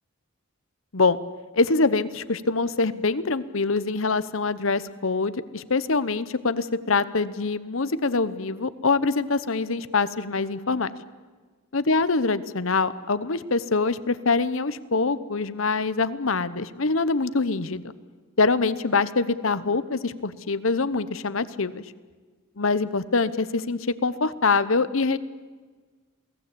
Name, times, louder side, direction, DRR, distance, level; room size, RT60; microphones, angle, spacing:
voice 1, 1.5-10.9 11.7-17.9 18.4-21.8 22.6-25.2, left 3 dB, 65° left, 15 dB, 1.0 m, -24 dB
28.0 x 18.5 x 8.6 m, 1.4 s
head